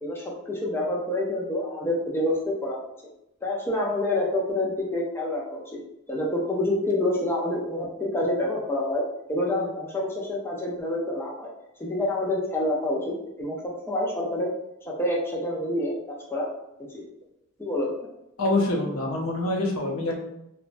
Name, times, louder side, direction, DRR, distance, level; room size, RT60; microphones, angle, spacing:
voice 1, 0.0-2.9 3.4-5.8 6.1-9.0 9.3-11.5 11.8-13.6 13.9-14.5 14.8-15.9 16.3-16.5 16.9-17.0 17.6-18.1, left 1 dB, 10° left, -3 dB, 0.4 m, -27 dB
voice 2, 18.4-20.2, left 2 dB, 85° left, 0 dB, 0.6 m, -25 dB
3.0 x 2.1 x 2.5 m, 0.86 s
head